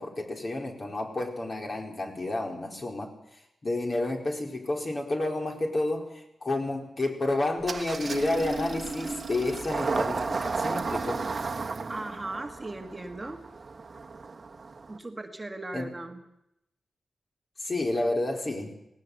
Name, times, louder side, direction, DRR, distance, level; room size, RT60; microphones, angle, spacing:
voice 1, 0.0-3.1 3.6-11.2 15.7-15.9 17.6-18.7, left 2 dB, 35° left, 2 dB, 4.4 m, -30 dB
Engine starting, 7.6-15.0, right 4 dB, 40° right, 1.5 m, -33 dB
voice 2, 11.9-13.4 14.9-16.2, right 2 dB, 20° right, 4 dB, 1.8 m, -38 dB
18.5 x 18.5 x 8.0 m, 0.82 s
wide cardioid pair, 115°, 0 cm